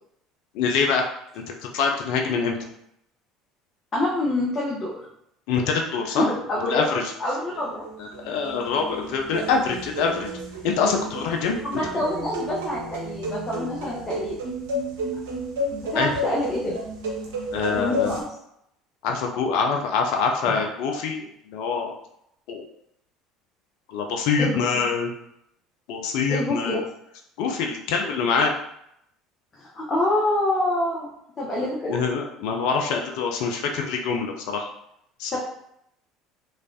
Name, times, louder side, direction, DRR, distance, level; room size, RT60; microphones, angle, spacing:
voice 1, 0.5-1.0 1.3-2.6 5.5-6.3 6.7-7.1 8.0-10.3 10.6-11.6 11.9-12.0 16.0-16.1 17.5-18.1 19.0-21.2 21.5-21.9 22.5-22.7 23.9-25.1 25.9-26.8 27.4-28.5 31.9-34.7 35.2-35.4, left 5 dB, 65° left, 2 dB, 0.4 m, -25 dB
voice 2, 3.9-5.1 6.1-7.8 11.7-14.4 15.7-16.8 17.7-18.3 20.5-20.6 24.4-24.6 26.3-26.8 29.5-31.1 31.4-32.0 35.3-35.4, left 1 dB, 35° left, -5 dB, 0.8 m, -26 dB
sound 1, 7.5-18.2, equal, 75° right, 0.6 m, -32 dB
3.1 x 2.4 x 2.5 m, 0.76 s
hypercardioid pair, 65°, 0 cm